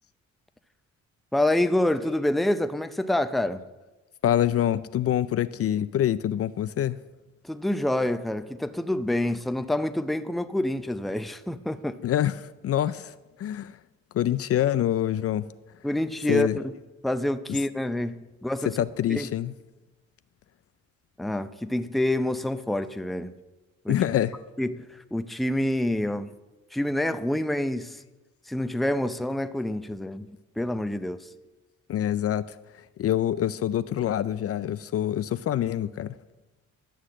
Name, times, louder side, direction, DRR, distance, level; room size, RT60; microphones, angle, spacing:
voice 1, 1.3-3.6 7.4-12.0 15.8-16.6 17.0-18.8 19.1-19.3 21.2-23.3 23.8-24.0 24.6-26.3 26.7-28.0 28.5-30.3 30.6-31.3, left 1 dB, ahead, 0.5 m, -27 dB
voice 2, 4.2-7.0 12.0-13.8 14.1-15.5 16.3-16.6 17.5-17.6 18.6-19.5 23.9-24.4 31.9-36.2, left 11 dB, 50° left, 0.4 m, -26 dB
11.5 x 6.4 x 7.6 m
cardioid pair, 90°, 30 cm